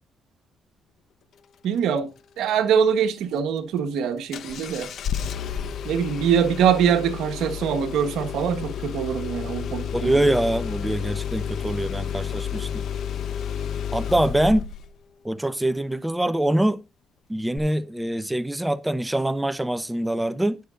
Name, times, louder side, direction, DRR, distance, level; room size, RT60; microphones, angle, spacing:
voice 1, 1.6-2.1 2.4-4.9 5.8-10.2, right 8 dB, 85° right, 1.4 m, -23 dB
Engine starting, 4.3-14.9 17.6-17.7, left 8 dB, 70° left, 1.0 m, -31 dB
voice 2, 9.9-12.8 13.9-14.6 15.2-16.8 17.3-20.6, right 1 dB, 5° right, 0.7 m, -24 dB
19.0 x 6.7 x 2.5 m
cardioid pair, 90°, 0 cm